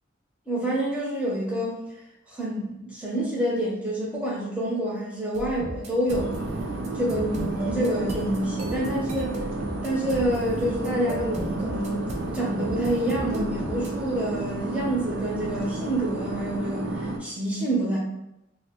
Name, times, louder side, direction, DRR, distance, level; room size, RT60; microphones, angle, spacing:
voice 1, 0.5-1.9 2.3-6.3 6.9-9.4 9.8-12.1 12.3-18.0, right 1 dB, 5° right, -5 dB, 0.8 m, -27 dB
sound 1, 5.3-13.9, right 1 dB, 35° right, 0.4 m, -36 dB
sound 2, 6.1-17.2, right 2 dB, 90° right, 0.5 m, -31 dB
2.8 x 2.0 x 3.5 m, 0.87 s
head